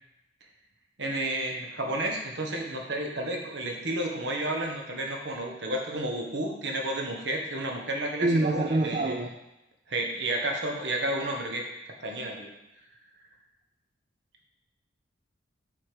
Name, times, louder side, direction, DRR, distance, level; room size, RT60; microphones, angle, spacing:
voice 1, 1.0-9.2 9.9-11.6 12.0-12.5, right 1 dB, 65° right, 1 dB, 1.3 m, -31 dB
voice 2, 8.2-9.4, right 2 dB, 35° right, 4 dB, 0.4 m, -25 dB
7.3 x 4.8 x 5.0 m, 0.93 s
head